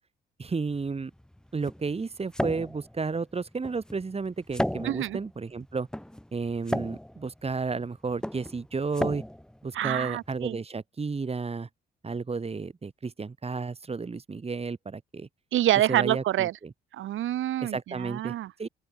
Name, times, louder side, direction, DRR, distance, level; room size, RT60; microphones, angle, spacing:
voice 1, 0.4-1.1 1.5-5.9 6.3-9.2 9.6-11.7 12.0-15.3 15.9-16.5 17.6-18.3 18.6-18.7, right 4 dB, 30° right, 6.9 m, -32 dB
sound 1, 0.7-10.5, equal, 5° left, 2.4 m, -36 dB
voice 2, 4.8-5.2 9.7-10.6 15.5-16.6 16.9-18.5, right 13 dB, 80° right, 4.9 m, -27 dB
open air
cardioid pair, 90°, 20 cm